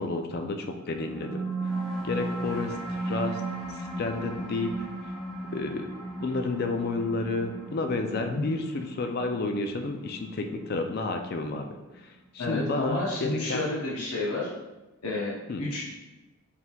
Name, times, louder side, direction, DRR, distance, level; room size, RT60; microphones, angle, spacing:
voice 1, 0.0-1.4 2.0-3.4 4.0-4.7 5.5-5.9 6.2-11.7 12.0-13.6 15.5-15.6, left 3 dB, 45° left, 5 dB, 0.3 m, -31 dB
sound 1, 0.9-11.8, right 2 dB, ahead, 0.6 m, -36 dB
voice 2, 12.4-14.5 15.0-15.9, left 2 dB, 80° left, -5 dB, 0.7 m, -30 dB
4.3 x 3.6 x 2.3 m, 1.1 s
head